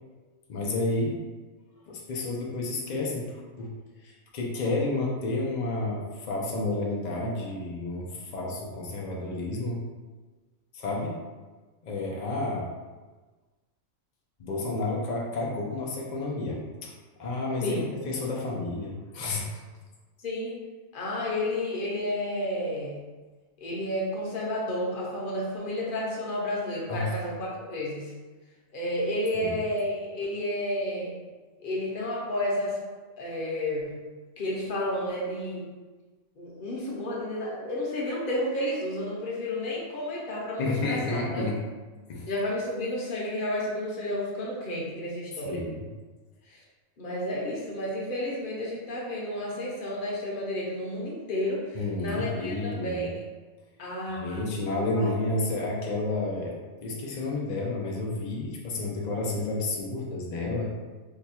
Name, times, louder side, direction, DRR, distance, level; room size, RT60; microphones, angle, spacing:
voice 1, 0.5-1.2 1.9-3.3 3.6-3.7 4.0-9.8 10.7-11.2 11.8-12.7 14.4-16.9 17.2-19.6 26.9-27.1 29.4-29.5 40.6-41.6 42.1-42.3 45.4-45.8 51.7-53.1 54.1-56.6 56.8-60.7, left 2 dB, 75° left, -2 dB, 0.4 m, -30 dB
voice 2, 20.2-20.6 20.9-23.0 23.6-28.1 28.7-31.2 31.6-32.8 33.2-34.0 34.4-35.7 36.4-41.5 42.3-45.6 46.5-46.6 47.0-53.1 53.8-54.4 54.8-55.1, left 1 dB, 50° left, -4 dB, 0.7 m, -31 dB
2.8 x 2.3 x 4.1 m, 1.3 s
omnidirectional pair, 1.4 m